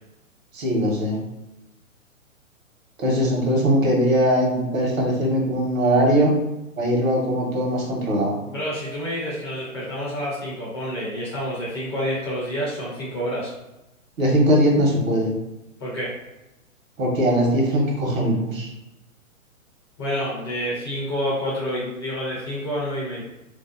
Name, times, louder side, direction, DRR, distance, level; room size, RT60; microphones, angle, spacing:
voice 1, 0.5-1.2 3.0-6.3 6.8-8.3 14.2-15.3 17.0-18.7, equal, 70° right, -1 dB, 1.1 m, -20 dB
voice 2, 8.5-13.5 15.8-16.1 20.0-23.2, equal, 20° left, -7 dB, 0.4 m, -28 dB
2.6 x 2.1 x 2.4 m, 0.95 s
hypercardioid pair, 140°, 42 cm